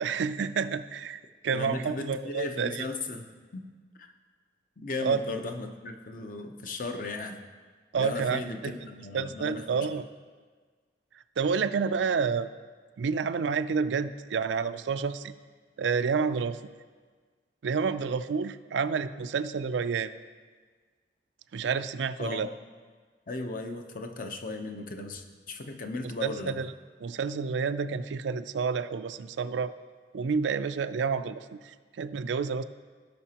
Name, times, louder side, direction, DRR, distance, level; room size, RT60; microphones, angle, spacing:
voice 1, 0.0-2.9 5.0-5.2 7.9-8.7 9.1-10.1 11.1-12.5 13.0-15.3 15.8-16.6 17.6-20.1 21.5-22.5 26.0-26.7 27.0-29.7 30.1-32.6, right 5 dB, 80° right, 12 dB, 0.4 m, -29 dB
voice 2, 1.5-3.3 3.5-3.6 4.0-4.1 4.8-7.4 8.0-9.9 22.2-22.5 23.3-26.5, left 2 dB, 50° left, 5 dB, 0.7 m, -36 dB
17.0 x 5.9 x 2.9 m, 1.5 s
head